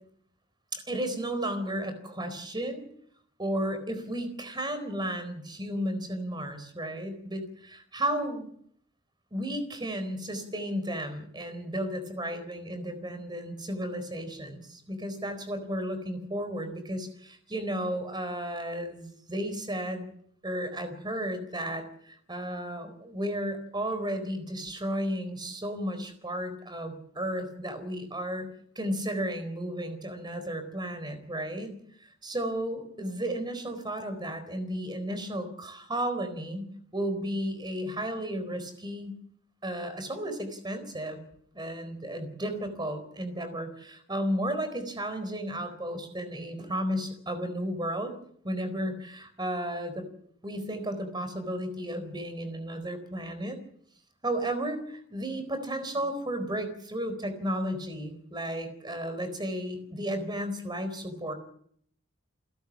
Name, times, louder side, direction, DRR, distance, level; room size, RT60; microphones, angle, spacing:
voice 1, 0.7-2.8 3.4-8.5 9.3-20.1 20.4-28.5 28.8-31.8 32.2-39.1 39.6-41.2 41.5-48.1 48.4-50.0 50.4-53.6 54.2-61.3, right 1 dB, 20° right, 10 dB, 4.3 m, -33 dB
29.0 x 12.5 x 7.4 m, 0.65 s
head